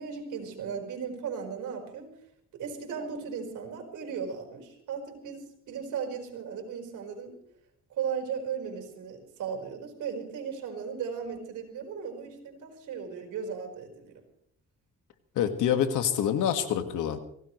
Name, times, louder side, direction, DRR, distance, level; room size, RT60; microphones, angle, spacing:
voice 1, 0.0-2.1 2.5-7.4 7.9-14.2, right 6 dB, 80° right, 2 dB, 4.7 m, -36 dB
voice 2, 15.4-17.2, left 9 dB, 85° left, 8 dB, 1.9 m, -26 dB
24.5 x 17.0 x 3.2 m, 0.70 s
cardioid pair, 90°, 30 cm